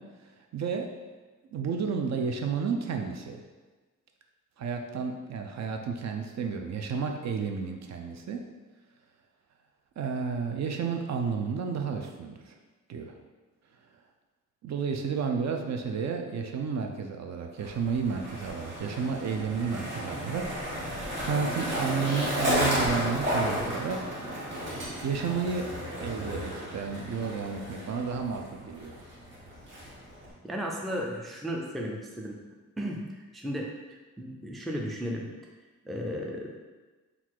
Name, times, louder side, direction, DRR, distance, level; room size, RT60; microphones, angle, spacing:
voice 1, 0.5-0.9 1.5-3.4 4.6-8.4 10.0-12.5 12.9-13.1 14.6-20.4 20.8-24.0 25.0-25.6 26.0-29.0, right 5 dB, 60° right, 3 dB, 0.5 m, -31 dB
Skateboard, 17.6-30.3, equal, 35° right, 1.4 m, -33 dB
voice 2, 30.4-32.4 32.8-35.3 35.9-36.6, equal, ahead, -1 dB, 0.3 m, -35 dB
3.9 x 2.4 x 4.4 m, 1.3 s
wide cardioid pair, 160°, 32 cm